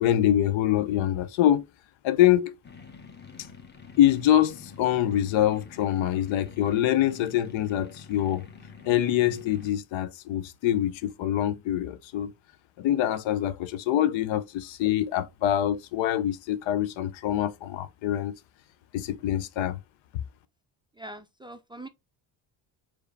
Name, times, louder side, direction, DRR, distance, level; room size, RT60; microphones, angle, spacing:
voice 1, 0.0-1.6 2.0-2.5 4.0-8.4 8.9-12.3 12.8-18.3 18.9-19.8, left 12 dB, 65° left, 0.7 m, -25 dB
sound 1, 2.6-9.7, left 5 dB, 20° left, 1.2 m, -47 dB
voice 2, 21.0-21.9, right 1 dB, 10° right, 0.4 m, -42 dB
4.6 x 2.9 x 3.2 m
supercardioid pair, 80°, 49 cm